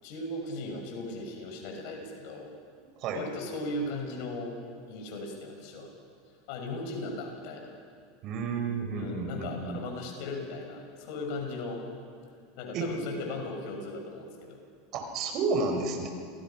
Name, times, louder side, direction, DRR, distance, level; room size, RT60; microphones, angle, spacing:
voice 1, 0.0-2.5 3.1-4.6 4.9-5.9 6.5-7.7 8.9-11.8 12.6-14.6, left 2 dB, 60° left, 2 dB, 6.6 m, -37 dB
voice 2, 8.2-9.8 12.7-12.9 14.9-16.1, right 4 dB, 50° right, 4 dB, 4.9 m, -31 dB
28.5 x 19.5 x 6.0 m, 2.2 s
hypercardioid pair, 90°, 0 cm